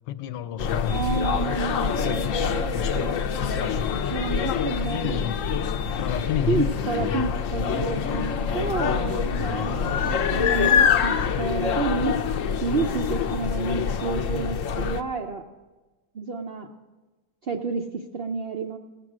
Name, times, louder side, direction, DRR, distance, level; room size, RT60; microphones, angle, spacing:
voice 1, 0.1-0.9 4.4-5.4 5.9-6.7 7.0-7.2, left 11 dB, 85° left, 13 dB, 1.2 m, -30 dB
sound 1, 0.6-15.0, left 7 dB, 65° left, 0.8 m, -25 dB
voice 2, 0.9-3.2 4.1-5.2 6.5-12.2 12.6-15.4 16.1-16.7 17.4-18.8, right 4 dB, 65° right, 3 dB, 0.5 m, -30 dB
16.5 x 7.6 x 6.1 m, 1.2 s
omnidirectional pair, 1.9 m